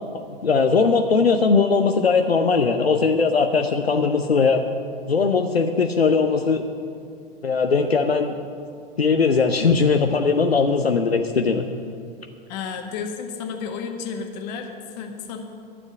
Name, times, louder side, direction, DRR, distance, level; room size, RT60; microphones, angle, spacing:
voice 1, 0.4-4.6 5.1-6.6 7.4-8.3 9.0-11.7, left 4 dB, 85° left, 5 dB, 0.7 m, -19 dB
voice 2, 12.5-15.4, left 6 dB, 45° left, 4 dB, 1.6 m, -32 dB
12.0 x 7.2 x 9.2 m, 2.4 s
figure-of-eight pair, 95°, 30 cm